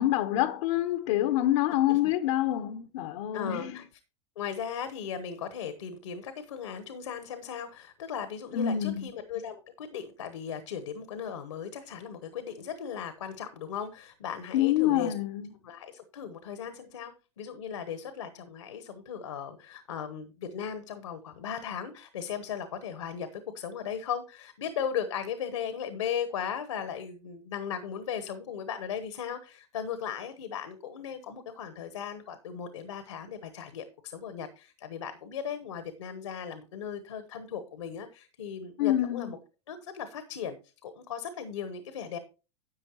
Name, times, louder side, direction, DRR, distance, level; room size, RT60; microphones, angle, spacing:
voice 1, 0.0-3.8 8.5-9.1 14.5-15.5 38.8-39.3, left 13 dB, 70° left, 0.8 m, -26 dB
voice 2, 3.3-3.8 4.4-15.1 15.6-39.4 39.7-42.2, left 8 dB, 85° left, 1.1 m, -37 dB
11.0 x 7.7 x 3.0 m
hypercardioid pair, 100°, 16 cm